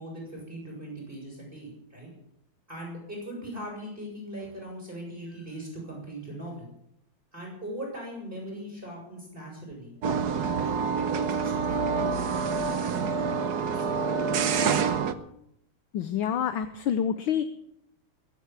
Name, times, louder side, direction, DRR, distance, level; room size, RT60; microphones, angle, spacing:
voice 1, 0.0-2.1 2.7-6.7 7.3-10.0 10.3-14.3, right 1 dB, 20° right, -1 dB, 6.3 m, -40 dB
sound 1, 10.0-15.1, right 5 dB, 55° right, 1.3 m, -27 dB
voice 2, 15.9-17.4, left 8 dB, 70° left, 10 dB, 1.6 m, -27 dB
21.5 x 8.4 x 7.3 m, 0.75 s
omnidirectional pair, 2.4 m